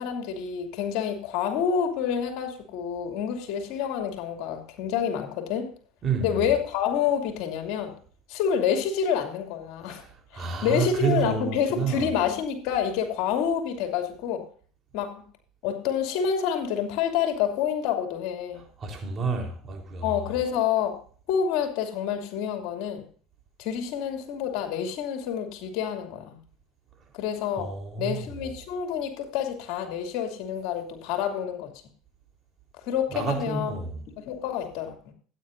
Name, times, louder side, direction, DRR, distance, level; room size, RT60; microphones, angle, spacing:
voice 1, 0.0-5.7 6.2-7.9 8.3-10.0 10.3-14.5 14.9-15.2 15.6-18.6 20.0-21.0 21.3-23.1 23.6-26.4 27.1-27.7 28.0-31.7 32.8-33.7 34.2-35.1, left 8 dB, 70° left, 2.6 m, -28 dB
voice 2, 6.0-6.4 9.9-12.1 18.8-20.1 27.6-28.3 33.1-34.0, right 5 dB, 40° right, 3.9 m, -29 dB
15.5 x 9.5 x 2.6 m
supercardioid pair, 90°, 0 cm